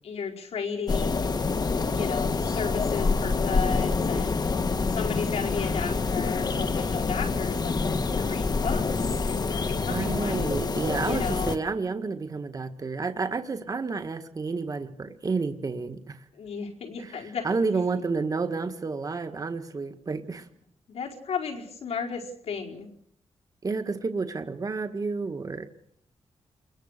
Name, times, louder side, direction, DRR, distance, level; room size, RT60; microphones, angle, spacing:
voice 1, 0.0-1.3 1.9-4.5 4.9-8.8 9.2-10.4 11.0-11.6 16.3-17.5 20.9-22.9, left 6 dB, 90° left, 0 dB, 4.9 m, -34 dB
sound 1, 0.9-11.6, left 4 dB, 40° left, 1.3 m, -27 dB
voice 2, 9.9-16.3 17.0-20.5 23.6-25.7, right 4 dB, 35° right, 8 dB, 1.7 m, -30 dB
29.0 x 22.0 x 6.8 m, 0.72 s
wide cardioid pair, 125°, 10 cm